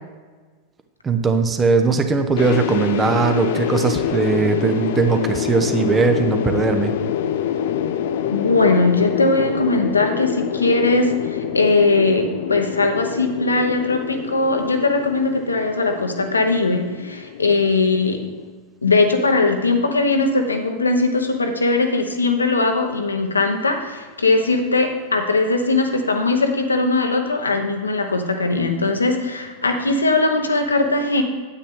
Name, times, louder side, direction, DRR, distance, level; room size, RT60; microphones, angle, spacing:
voice 1, 1.0-6.9, right 4 dB, 20° right, 8 dB, 0.8 m, -19 dB
sound 1, 2.4-18.5, left 9 dB, 55° left, 0.5 m, -26 dB
voice 2, 8.3-18.2 18.8-31.2, left 3 dB, 75° left, 5 dB, 0.9 m, -20 dB
9.2 x 8.6 x 3.6 m, 1.4 s
figure-of-eight pair, 90°, 0 cm